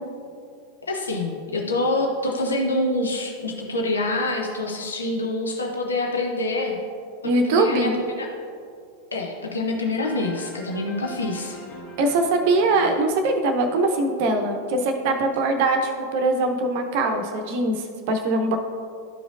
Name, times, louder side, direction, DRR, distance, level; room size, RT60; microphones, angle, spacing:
voice 1, 0.8-6.8 7.2-8.3 9.1-11.6, left 2 dB, 70° left, 1 dB, 0.8 m, -26 dB
voice 2, 7.2-7.9 12.0-18.6, right 2 dB, 50° right, 5 dB, 0.7 m, -22 dB
sound 1, 10.0-14.6, equal, 40° left, 1.7 m, -42 dB
12.5 x 5.0 x 2.4 m, 2.3 s
figure-of-eight pair, 90°, 0 cm